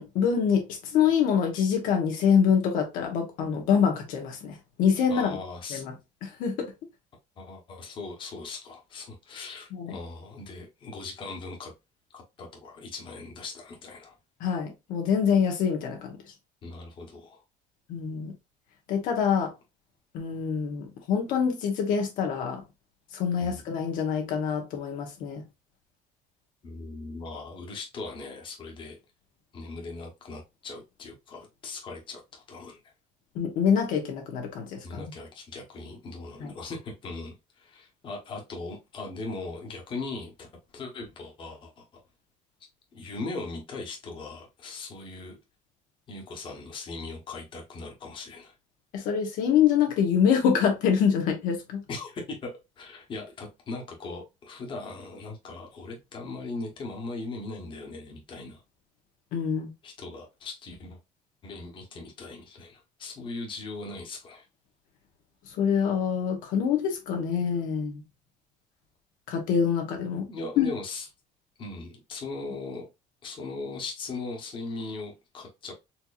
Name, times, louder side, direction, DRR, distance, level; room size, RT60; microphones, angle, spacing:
voice 1, 0.0-5.3 5.7-5.9 6.2-6.7 9.7-10.0 14.4-16.2 17.9-18.3 18.9-19.5 20.1-22.6 23.1-25.4 33.3-35.0 36.4-36.5 48.9-51.8 59.3-59.7 65.5-68.0 69.3-70.3 70.6-70.7, left 7 dB, 75° left, 1.1 m, -25 dB
voice 2, 5.1-5.8 7.4-11.7 12.1-14.2 16.6-17.4 23.4-23.7 26.6-29.0 29.5-32.8 34.8-40.5 40.7-42.0 42.9-45.4 46.1-48.5 51.9-52.5 52.8-58.6 59.8-61.0 61.4-64.5 70.3-71.1 71.6-72.9 73.2-75.7, left 3 dB, 35° left, 1.2 m, -39 dB
4.4 x 2.9 x 2.4 m
cardioid pair, 150°, 14 cm